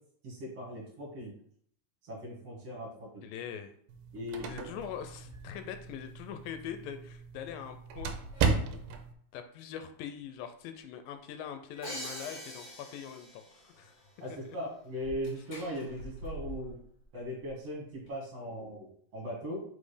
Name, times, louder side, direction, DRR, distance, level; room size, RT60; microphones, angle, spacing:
voice 1, 0.2-1.3 2.0-3.2 4.1-4.6 14.2-16.8 17.1-19.6, equal, 50° right, -4 dB, 2.8 m, -39 dB
voice 2, 3.2-3.7 4.5-8.2 8.6-8.9 9.3-13.9, left 9 dB, 80° left, 8 dB, 2.3 m, -42 dB
sound 1, 3.9-9.1, right 4 dB, 85° right, 2.5 m, -35 dB
sound 2, 5.3-5.8 6.2-6.3 7.7-7.8 8.0-8.9 9.7-9.8 10.2-10.3 10.8-10.9 11.1-11.2 11.7-12.3 12.8-12.9 13.0-13.1 13.7-18.1, equal, 35° left, 2.4 m, -49 dB
Crash cymbal, 11.8-13.7, equal, 25° right, 0.5 m, -43 dB
5.4 x 4.2 x 4.9 m, 0.63 s
omnidirectional pair, 4.1 m